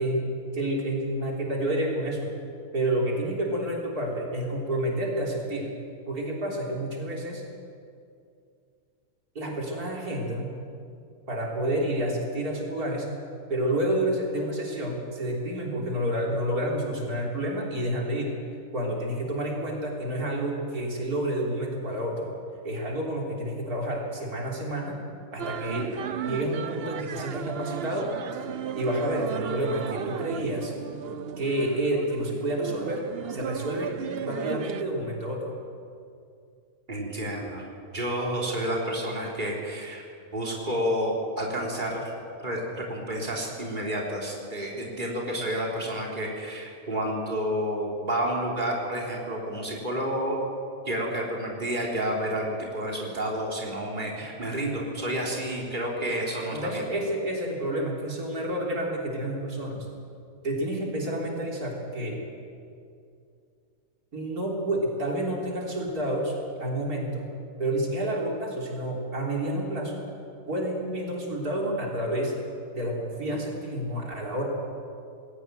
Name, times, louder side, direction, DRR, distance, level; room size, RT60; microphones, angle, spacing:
voice 1, 0.0-2.3 2.7-5.7 6.1-7.4 9.4-10.6 10.9-11.0 11.3-13.1 13.5-18.4 18.7-22.3 22.6-25.0 25.3-25.9 26.2-28.4 28.7-30.7 31.4-35.5 56.0-56.2 56.5-59.9 60.4-62.2 64.1-66.3 66.6-67.3 67.6-70.0 70.5-72.4 72.7-74.5, right 1 dB, 90° right, -2 dB, 4.2 m, -29 dB
sound 1, 25.4-34.8, right 8 dB, 50° right, 0.8 m, -35 dB
voice 2, 36.9-37.6 37.9-40.0 40.3-42.1 42.4-50.4 50.9-56.8, equal, 30° right, -2 dB, 3.9 m, -30 dB
20.5 x 17.5 x 9.3 m, 2.4 s
omnidirectional pair, 1.6 m